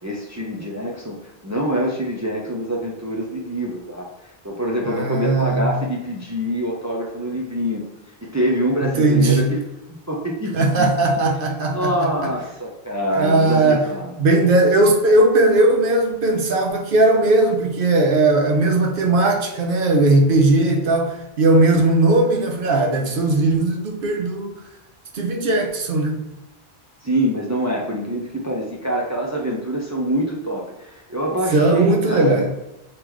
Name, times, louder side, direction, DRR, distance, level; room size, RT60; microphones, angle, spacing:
voice 1, 0.0-7.8 8.2-9.6 9.9-10.9 11.7-14.2 27.0-32.5, equal, 25° right, -1 dB, 0.4 m, -25 dB
voice 2, 4.9-5.7 8.8-9.5 10.5-12.1 13.2-13.9 14.2-24.5 25.1-26.2 31.5-32.5, right 2 dB, 65° right, 3 dB, 0.8 m, -18 dB
3.7 x 3.2 x 3.0 m, 0.96 s
omnidirectional pair, 1.0 m